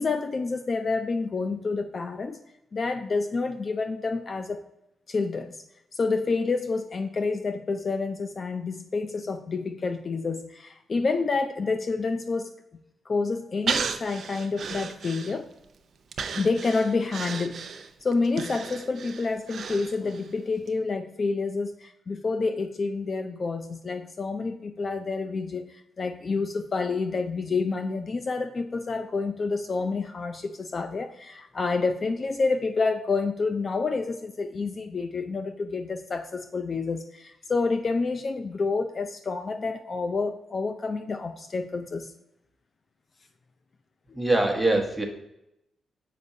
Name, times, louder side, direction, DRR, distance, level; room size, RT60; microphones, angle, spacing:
voice 1, 0.0-2.4 2.7-4.6 5.1-5.6 5.9-12.5 13.1-15.5 16.3-17.7 18.0-42.1, left 4 dB, 45° left, 7 dB, 0.4 m, -28 dB
Breathing, 13.7-15.6 16.1-20.3 20.7-20.8, right 6 dB, 65° right, 0.5 m, -34 dB
voice 2, 44.1-45.0, right 2 dB, 5° right, 0 dB, 1.1 m, -23 dB
6.8 x 5.2 x 2.7 m, 0.85 s
cardioid pair, 95°, 0 cm